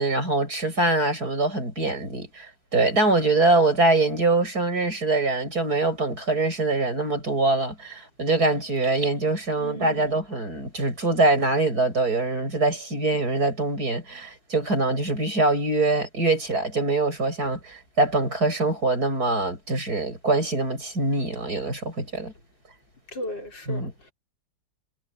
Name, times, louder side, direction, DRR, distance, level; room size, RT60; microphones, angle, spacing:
voice 1, 0.0-22.3 23.7-23.9, right 2 dB, 55° right, 8.7 m, -24 dB
voice 2, 9.6-10.2 23.1-24.1, left 1 dB, 80° left, 5.7 m, -36 dB
omnidirectional pair, 1.9 m